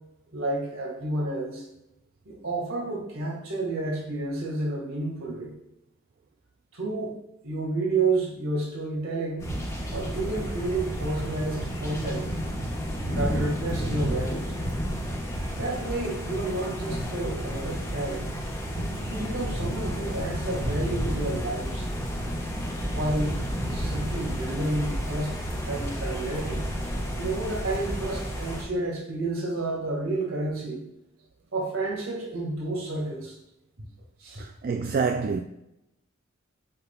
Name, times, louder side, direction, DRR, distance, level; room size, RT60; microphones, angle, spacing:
voice 1, 0.3-1.7 2.3-5.5 6.7-9.5 9.9-12.3 13.1-14.5 15.6-18.4 19.1-21.9 22.9-23.4 23.7-25.4 25.6-26.7 27.1-30.8 31.5-33.4 34.2-34.4, right 2 dB, 70° right, 1.9 m, -30 dB
sound 1, 9.4-28.6, equal, 15° left, 1.3 m, -31 dB
voice 2, 34.4-35.4, right 5 dB, 45° right, 0.3 m, -27 dB
7.8 x 5.7 x 2.3 m
head